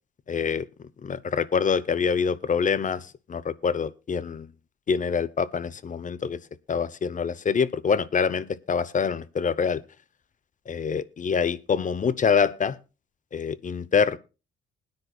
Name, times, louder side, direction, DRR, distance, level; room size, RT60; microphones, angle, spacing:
voice 1, 0.3-0.7 1.0-4.5 4.9-6.4 6.7-9.8 10.7-12.8 13.3-14.2, left 6 dB, 40° left, 0.8 m, -25 dB
20.5 x 9.8 x 2.4 m
cardioid pair, 80°, 21 cm